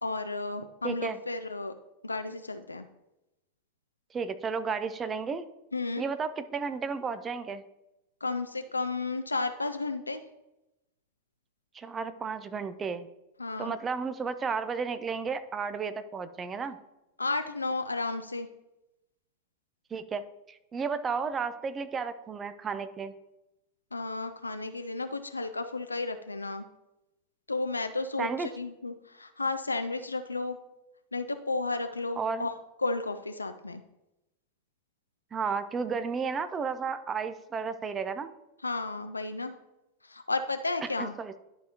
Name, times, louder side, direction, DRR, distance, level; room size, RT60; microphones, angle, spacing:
voice 1, 0.0-1.7 2.0-2.9 5.7-6.0 8.2-10.2 13.4-13.8 17.2-18.5 23.9-26.7 27.5-30.6 31.1-33.8 38.6-39.5 40.0-41.1, left 3 dB, 80° left, 8 dB, 0.4 m, -33 dB
voice 2, 0.8-1.2 4.1-5.5 6.0-7.6 11.7-13.1 13.6-16.8 19.9-20.2 20.5-23.1 28.2-28.5 32.2-32.5 35.3-38.3 40.8-41.4, right 5 dB, 20° right, 12 dB, 0.5 m, -33 dB
11.0 x 4.8 x 2.8 m, 0.93 s
figure-of-eight pair, 90°, 0 cm